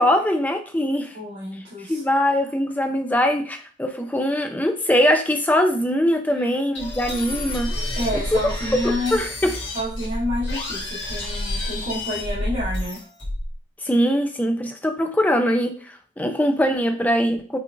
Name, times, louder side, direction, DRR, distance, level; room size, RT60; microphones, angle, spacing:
voice 1, 0.0-1.2 1.9-7.7 8.3-8.4 9.1-9.5 13.8-17.6, equal, 10° left, 5 dB, 0.4 m, -22 dB
voice 2, 1.1-2.0 6.4-6.6 7.9-9.2 9.7-13.1, left 1 dB, 80° right, -9 dB, 1.3 m, -29 dB
sound 1, 6.7-13.5, left 1 dB, 85° left, 1.6 m, -29 dB
5.6 x 2.5 x 2.5 m, 0.42 s
head